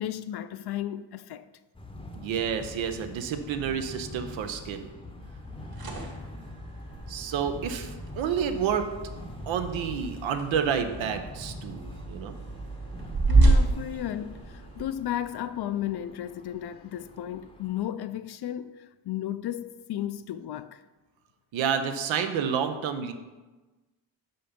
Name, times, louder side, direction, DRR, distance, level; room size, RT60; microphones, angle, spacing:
voice 1, 0.0-1.4 13.3-20.8, left 11 dB, 60° left, 0.5 m, -34 dB
sound 1, 1.7-17.8, left 2 dB, 10° left, 0.7 m, -44 dB
voice 2, 2.1-4.9 7.1-8.9 9.5-12.3 21.5-23.1, right 7 dB, 90° right, 0.8 m, -29 dB
sound 2, 5.5-14.8, right 2 dB, 50° right, 1.6 m, -29 dB
5.6 x 5.4 x 5.2 m
cardioid pair, 75°, 45 cm